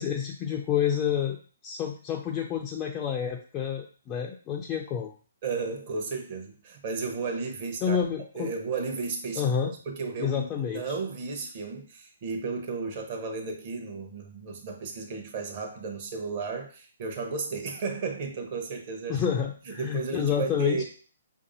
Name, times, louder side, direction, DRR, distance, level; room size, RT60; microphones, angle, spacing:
voice 1, 0.0-1.4 1.6-5.1 7.8-8.5 9.4-9.7 10.2-10.9 19.1-20.8, left 8 dB, 25° left, 1 dB, 0.4 m, -29 dB
voice 2, 5.4-8.0 8.3-9.5 9.9-19.2 19.7-20.8, right 4 dB, 45° right, 3 dB, 0.8 m, -34 dB
4.6 x 2.6 x 2.6 m, 0.40 s
figure-of-eight pair, 135°, 0 cm